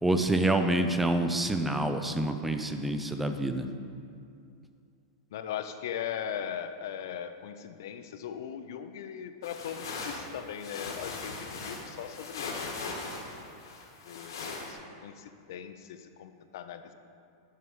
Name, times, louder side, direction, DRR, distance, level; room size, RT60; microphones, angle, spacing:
voice 1, 0.0-3.7, right 1 dB, 5° right, 7 dB, 0.4 m, -27 dB
voice 2, 5.3-13.0 14.1-16.9, left 9 dB, 65° left, 9 dB, 0.5 m, -39 dB
sound 1, 9.4-14.7, left 4 dB, 85° left, 1.4 m, -39 dB
9.3 x 4.6 x 5.4 m, 2.4 s
supercardioid pair, 160°, 2 cm